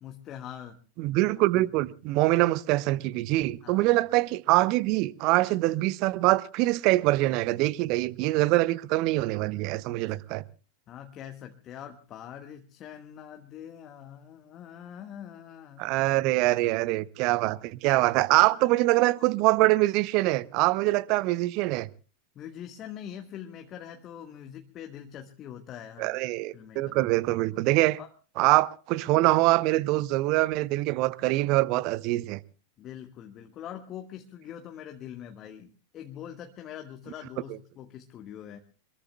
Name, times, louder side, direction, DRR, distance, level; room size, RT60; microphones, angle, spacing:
voice 1, 0.0-0.8 1.5-1.7 3.6-4.0 10.9-15.9 18.4-18.7 22.3-26.2 26.5-27.2 28.0-28.1 32.8-35.7 35.9-38.6, left 10 dB, 30° left, 1.4 m, -43 dB
voice 2, 1.0-10.4 15.8-21.9 26.0-28.0 28.4-32.4, right 19 dB, 40° right, 0.7 m, -24 dB
26.5 x 21.5 x 2.2 m
figure-of-eight pair, 90°, 0 cm